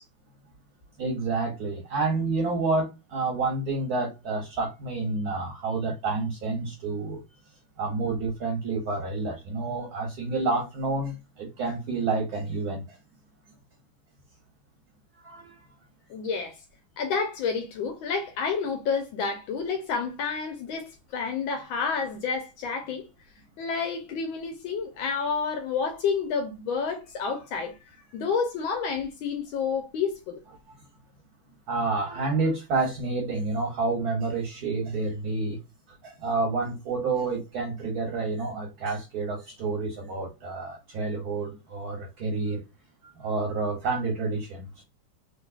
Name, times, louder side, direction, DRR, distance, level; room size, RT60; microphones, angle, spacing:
voice 1, 1.0-7.2 7.8-13.0 15.2-15.7 31.7-35.6 36.0-42.6 43.0-44.8, right 3 dB, 55° right, 1.3 m, -29 dB
voice 2, 16.1-16.6 17.0-23.1 23.6-27.7 28.1-30.4, left 5 dB, 80° left, 1.4 m, -29 dB
3.8 x 3.0 x 2.3 m
omnidirectional pair, 2.2 m